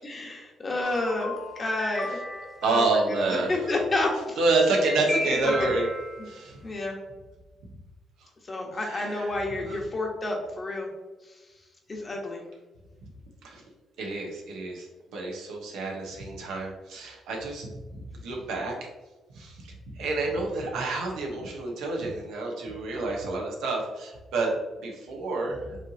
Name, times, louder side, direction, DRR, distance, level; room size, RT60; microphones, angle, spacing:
voice 1, 0.0-2.1 2.6-2.8 3.3-4.4 5.4-5.7 6.6-7.0 8.4-10.9 11.9-12.4, left 2 dB, 35° left, 0 dB, 1.1 m, -30 dB
sound 1, 0.8-2.7 4.8-6.3, left 1 dB, ahead, 1.1 m, -34 dB
voice 2, 2.6-3.7 4.4-5.9 6.2-6.6 7.6-7.8 8.2-8.3 8.8-9.4 9.7-9.8 13.0-13.1 13.4-13.6 14.0-18.7 19.3-25.8, right 3 dB, 85° right, 0 dB, 1.0 m, -29 dB
5.2 x 3.1 x 2.8 m, 1.2 s
cardioid pair, 90°, 0 cm